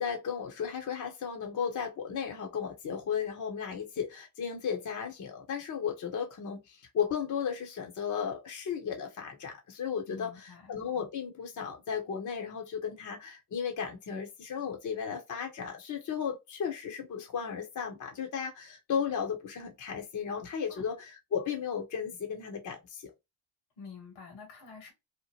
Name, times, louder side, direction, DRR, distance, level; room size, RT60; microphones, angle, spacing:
voice 1, 0.0-21.0 21.3-23.1, left 7 dB, 40° left, 0.9 m, -35 dB
voice 2, 10.1-10.7 20.7-20.9 23.8-24.9, left 5 dB, 75° left, 1.6 m, -48 dB
2.9 x 2.1 x 3.2 m
hypercardioid pair, 60°, 48 cm